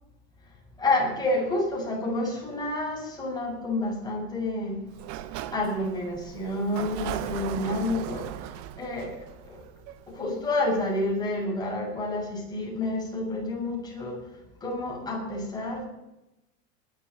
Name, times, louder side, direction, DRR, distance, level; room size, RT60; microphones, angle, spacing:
voice 1, 0.8-4.8 5.5-8.3 8.8-9.2 9.5-9.6 10.1-14.2 14.6-15.9, left 2 dB, 10° left, -2 dB, 6.9 m, -29 dB
Sliding door, 4.9-10.6, right 12 dB, 45° right, 1.0 m, -38 dB
21.0 x 12.5 x 4.2 m, 0.93 s
supercardioid pair, 140°, 40 cm